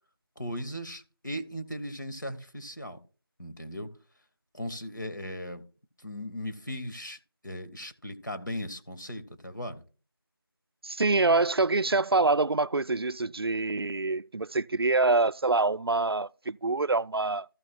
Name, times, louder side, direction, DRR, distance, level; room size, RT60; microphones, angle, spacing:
voice 1, 0.4-3.0 3.4-3.9 4.5-5.6 6.0-7.2 7.4-9.8, equal, 55° left, 1.9 m, -37 dB
voice 2, 10.8-17.5, right 3 dB, 80° right, 0.4 m, -25 dB
15.0 x 6.3 x 2.3 m
figure-of-eight pair, 180°, 13 cm